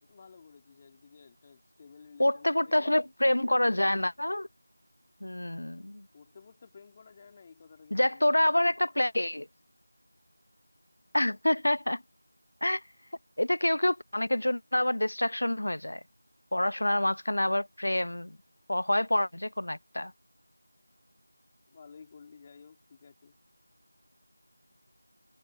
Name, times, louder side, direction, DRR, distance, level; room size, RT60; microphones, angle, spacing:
voice 1, 0.0-3.1 6.1-8.9 21.7-23.4, left 5 dB, 10° left, 2.7 m, -54 dB
voice 2, 2.2-4.5 5.2-6.1 7.9-9.5 11.1-12.0 12.6-12.8 13.4-16.0 16.5-18.4 18.7-20.1, left 1 dB, 65° left, 0.7 m, -27 dB
figure-of-eight pair, 180°, 0 cm